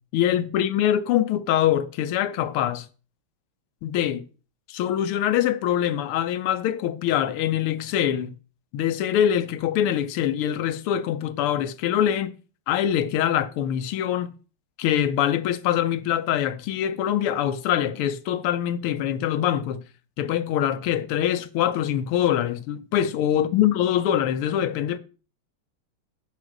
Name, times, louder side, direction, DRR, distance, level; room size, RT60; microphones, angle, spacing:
voice 1, 0.1-2.9 3.8-4.2 4.7-8.4 8.7-12.3 12.7-14.3 14.8-19.8 20.2-25.0, left 10 dB, 85° left, 1.6 m, -24 dB
7.9 x 4.9 x 6.1 m
omnidirectional pair, 2.4 m